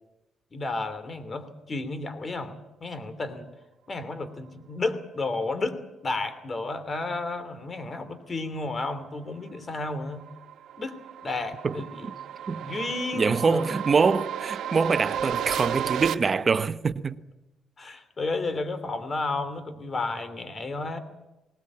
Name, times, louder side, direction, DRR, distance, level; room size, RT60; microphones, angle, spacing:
voice 1, 0.5-3.5 3.9-10.2 10.8-11.0 11.2-12.1 12.5-13.7 14.8-14.9 17.8-21.0, left 3 dB, 35° left, 3.0 m, -32 dB
sound 1, 9.6-16.1, right 9 dB, 75° right, 1.3 m, -33 dB
voice 2, 13.1-17.2, right 5 dB, 35° right, 0.9 m, -24 dB
20.0 x 19.0 x 8.6 m
cardioid pair, 90°, 0 cm